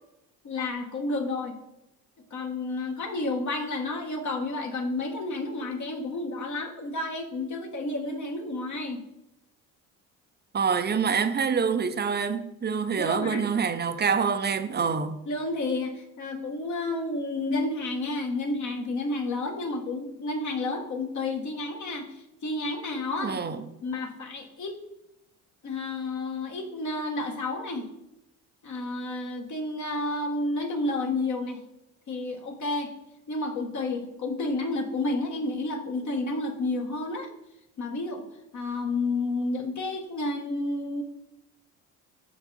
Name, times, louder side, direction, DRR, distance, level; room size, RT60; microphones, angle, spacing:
voice 1, 0.4-1.6 2.3-9.0 13.0-13.5 15.3-23.4 23.8-24.8 25.6-27.9 28.6-31.6 32.1-32.9 33.3-37.3 37.8-38.2 38.5-41.0, left 2 dB, 50° left, 1.2 m, -31 dB
voice 2, 10.5-15.1 23.2-23.6, right 6 dB, 25° right, 0.6 m, -26 dB
6.0 x 4.6 x 4.0 m
supercardioid pair, 75°, 38 cm